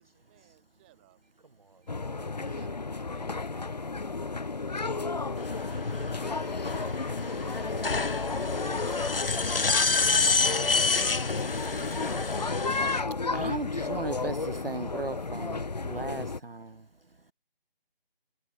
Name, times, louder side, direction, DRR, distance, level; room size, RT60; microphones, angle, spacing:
voice 1, 0.0-1.2 2.3-6.5, right 19 dB, 10° right, 6.4 m, -58 dB
voice 2, 1.4-2.8 7.3-8.2, right 4 dB, 45° right, 7.7 m, -55 dB
sound 1, 1.9-16.4, left 3 dB, 45° left, 0.5 m, -33 dB
voice 3, 4.6-5.5, left 21 dB, 10° left, 6.9 m, -52 dB
sound 2, 5.4-13.0, left 4 dB, 70° left, 1.7 m, -28 dB
voice 4, 7.2-7.6 8.1-8.6 10.2-10.3 11.0-11.2 11.7-11.9 13.3-16.9, right 3 dB, 70° right, 5.9 m, -38 dB
figure-of-eight pair, 170°, 30 cm